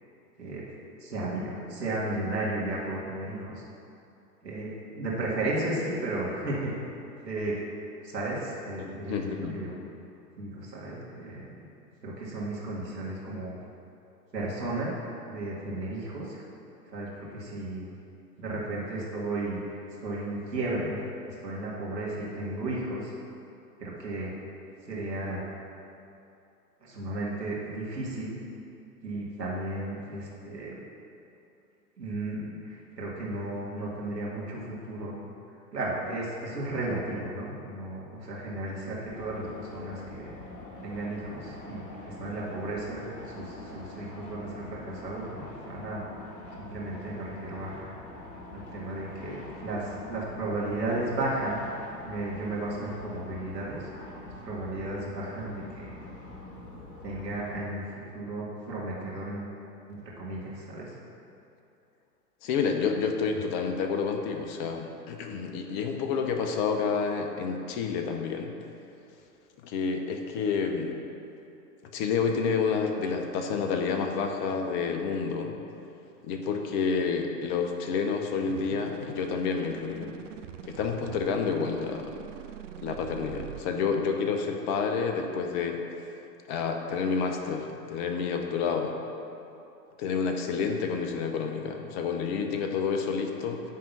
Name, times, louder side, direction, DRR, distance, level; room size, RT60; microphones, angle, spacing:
voice 1, 1.0-3.5 4.4-6.7 7.2-7.6 8.0-9.7 10.4-11.6 12.0-13.6 14.3-14.9 15.3-16.4 16.9-17.9 18.4-23.1 23.8-24.3 24.9-25.5 26.8-28.4 29.0-30.8 32.0-35.2 35.7-40.4 40.8-46.0 46.6-48.0 48.5-51.6 52.0-54.1 54.4-55.9 57.0-59.5 59.9-61.0, right 2 dB, 80° right, -5 dB, 2.2 m, -34 dB
voice 2, 8.8-9.6 62.4-68.5 69.6-70.9 71.9-75.6 76.2-80.1 80.6-82.2 82.8-85.8 86.5-89.0 90.0-93.6, left 5 dB, 30° left, 4 dB, 0.7 m, -29 dB
sound 1, 39.1-57.6, left 1 dB, 45° left, 2.0 m, -45 dB
sound 2, 78.5-83.6, right 10 dB, 50° right, 0.5 m, -43 dB
9.9 x 3.7 x 7.3 m, 2.7 s
figure-of-eight pair, 105°, 49 cm